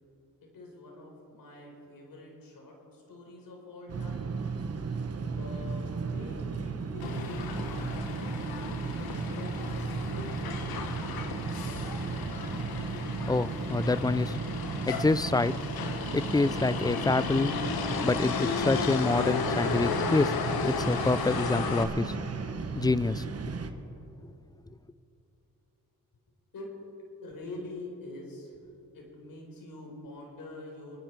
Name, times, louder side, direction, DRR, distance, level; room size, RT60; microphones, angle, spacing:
voice 1, 0.5-4.3 5.2-7.4 7.8-8.6 9.0-10.9 26.5-26.7 27.2-28.6 28.9-31.0, left 2 dB, 70° left, 0 dB, 4.5 m, -45 dB
sound 1, 3.9-23.7, right 4 dB, 45° right, 1.3 m, -35 dB
Motor vehicle (road), 7.0-21.8, left 5 dB, 90° left, 1.3 m, -34 dB
voice 2, 12.9-14.4 14.9-15.5 16.1-17.6 18.0-20.4 20.6-22.2 22.7-23.5, left 3 dB, 10° left, 18 dB, 0.4 m, -27 dB
29.0 x 10.5 x 4.7 m, 3.0 s
cardioid pair, 75°, 35 cm